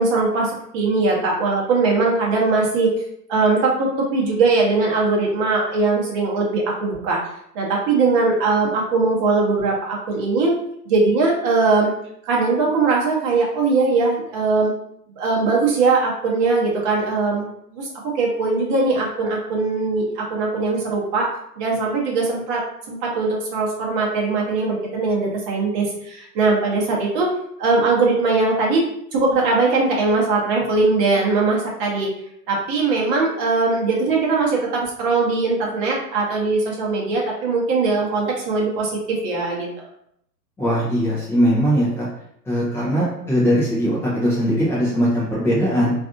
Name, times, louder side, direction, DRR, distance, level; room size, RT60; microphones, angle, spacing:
voice 1, 0.0-2.9 3.3-7.2 7.5-10.6 10.9-11.9 12.2-14.7 15.2-21.3 21.6-22.6 22.9-27.3 27.6-32.1 32.5-39.7, right 3 dB, 30° right, -2 dB, 0.9 m, -20 dB
voice 2, 40.6-42.1 42.4-45.9, equal, 5° left, -8 dB, 0.4 m, -20 dB
3.3 x 2.6 x 2.6 m, 0.73 s
figure-of-eight pair, 110°, 48 cm